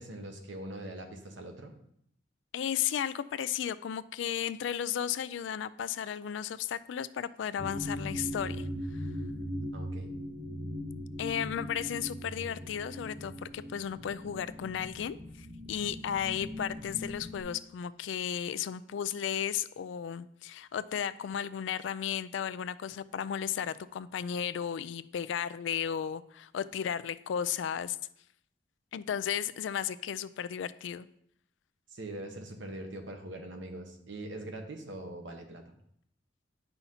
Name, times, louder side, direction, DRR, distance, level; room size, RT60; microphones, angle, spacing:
voice 1, 0.0-1.7 9.7-10.2 31.9-35.7, right 1 dB, 85° right, 4 dB, 1.0 m, -42 dB
voice 2, 2.5-8.7 8.9-9.0 11.2-28.0 28.9-31.1, left 9 dB, 80° left, 16 dB, 0.3 m, -34 dB
sound 1, 7.6-17.4, equal, 50° right, 2.8 m, -39 dB
9.1 x 5.6 x 2.8 m, 0.71 s
head